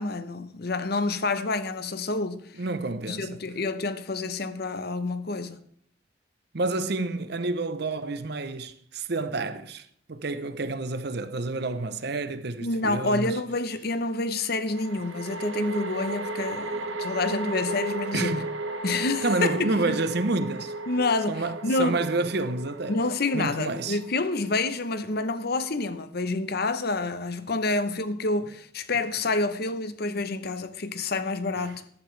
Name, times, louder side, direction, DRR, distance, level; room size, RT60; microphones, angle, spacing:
voice 1, 0.0-2.4 3.1-5.6 12.6-18.4 18.8-20.0 20.9-22.0 22.9-31.8, left 3 dB, 55° left, 0.9 m, -28 dB
voice 2, 2.6-3.4 6.5-13.4 18.1-18.5 19.2-20.7 21.3-23.0 23.3-24.0, right 2 dB, 55° right, 0.8 m, -29 dB
sound 1, 11.7-11.8 14.7-26.0, right 2 dB, 80° right, 1.1 m, -35 dB
14.5 x 11.5 x 3.3 m
head